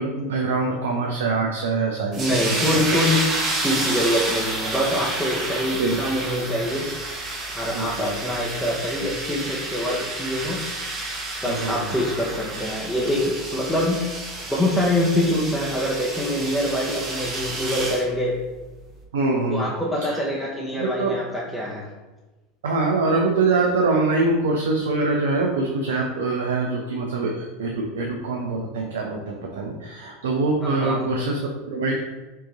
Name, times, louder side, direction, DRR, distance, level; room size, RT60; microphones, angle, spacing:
voice 1, 0.0-2.8 5.8-6.0 7.7-8.2 11.4-12.0 19.1-19.7 20.0-20.2 20.7-21.1 22.6-32.0, right 3 dB, 75° right, 0 dB, 0.6 m, -24 dB
sound 1, 2.1-18.1, right 2 dB, 40° right, 1.2 m, -30 dB
voice 2, 2.2-3.2 3.6-7.2 7.5-10.6 11.4-14.2 14.5-18.4 19.5-21.9 30.6-31.1, left 1 dB, 5° left, -6 dB, 0.9 m, -25 dB
4.6 x 3.0 x 3.8 m, 1.2 s
hypercardioid pair, 80°, 0 cm